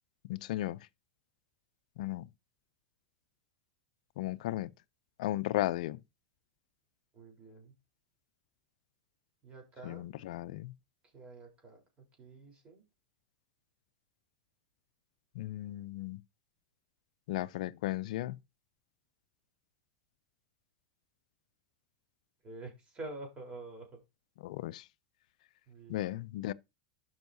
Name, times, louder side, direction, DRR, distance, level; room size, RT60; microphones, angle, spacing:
voice 1, 0.3-0.8 2.0-2.3 4.2-4.7 5.2-6.0 9.9-10.7 15.4-16.2 17.3-18.4 24.4-24.8 25.9-26.5, left 15 dB, 70° left, 0.4 m, -35 dB
voice 2, 7.1-7.7 9.4-10.1 11.0-12.8 22.4-24.0 25.7-26.2, right 2 dB, 25° right, 3.9 m, -48 dB
12.0 x 5.6 x 2.7 m
hypercardioid pair, 110°, 4 cm